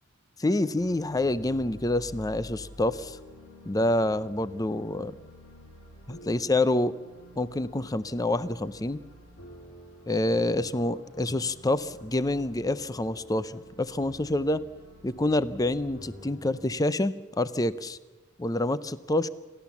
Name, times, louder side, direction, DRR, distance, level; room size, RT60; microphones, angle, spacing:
voice 1, 0.4-3.2 3.6-5.2 6.1-7.0 7.4-9.0 10.1-14.6 15.0-18.0 18.4-19.3, left 1 dB, 15° left, 15 dB, 0.5 m, -27 dB
sound 1, 0.8-16.7, left 1 dB, 75° left, 5.0 m, -49 dB
28.0 x 13.5 x 7.2 m, 1.2 s
head